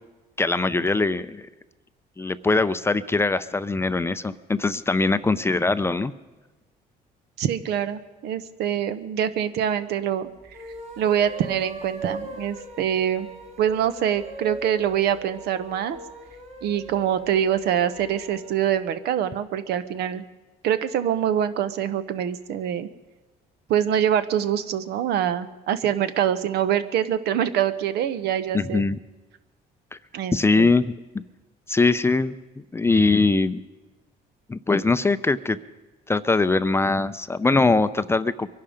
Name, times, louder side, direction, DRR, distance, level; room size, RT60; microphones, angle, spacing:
voice 1, 0.4-1.4 2.2-6.1 28.5-29.0 30.3-31.2 31.7-32.3 32.7-33.6 34.5-35.6 36.1-38.5, left 3 dB, 15° left, 13 dB, 0.5 m, -22 dB
voice 2, 7.4-10.3 11.0-13.3 13.6-16.0 16.6-20.2 20.6-22.9 23.7-28.8 30.1-30.7, right 9 dB, 75° right, 12 dB, 0.9 m, -24 dB
sound 1, 10.4-18.6, right 1 dB, 40° right, 2.4 m, -40 dB
23.0 x 11.5 x 5.1 m, 1.2 s
cardioid pair, 110°, 17 cm